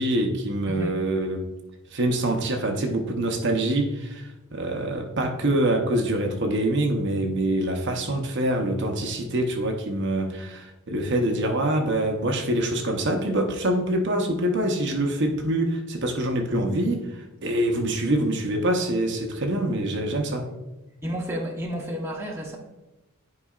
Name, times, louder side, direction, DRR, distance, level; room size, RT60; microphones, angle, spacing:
voice 1, 0.0-1.5 1.9-20.5, right 1 dB, 50° right, 3 dB, 0.7 m, -25 dB
voice 2, 21.0-22.6, equal, 10° right, -1 dB, 0.9 m, -31 dB
9.9 x 4.7 x 2.4 m, 1.0 s
head